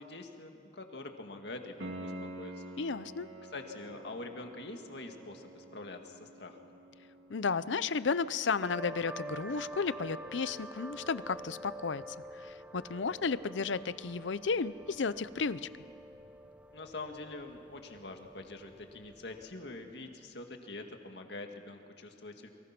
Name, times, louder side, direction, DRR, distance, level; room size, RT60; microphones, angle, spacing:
voice 1, 0.0-2.8 3.5-6.7 16.7-22.5, left 2 dB, 65° left, 4 dB, 2.0 m, -45 dB
Piano, 1.8-12.5 15.8-15.9, right 1 dB, 80° right, 2.0 m, -50 dB
voice 2, 2.8-3.3 7.3-15.7, left 5 dB, 85° left, 16 dB, 0.6 m, -33 dB
sound 1, 8.6-19.9, right 1 dB, 5° right, 0.6 m, -48 dB
29.5 x 23.5 x 6.0 m, 2.5 s
head